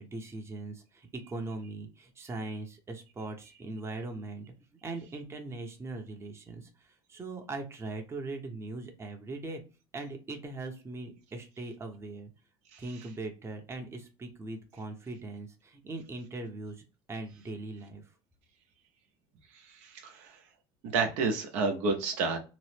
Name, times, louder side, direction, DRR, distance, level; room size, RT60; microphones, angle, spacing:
voice 1, 0.0-4.5 4.8-6.7 7.1-9.6 9.9-12.3 12.8-16.8 17.1-18.0, right 2 dB, 20° right, 0.7 m, -40 dB
voice 2, 19.5-20.4 20.9-22.4, right 4 dB, 70° right, 0.7 m, -30 dB
3.0 x 2.0 x 3.2 m
supercardioid pair, 100°, 13 cm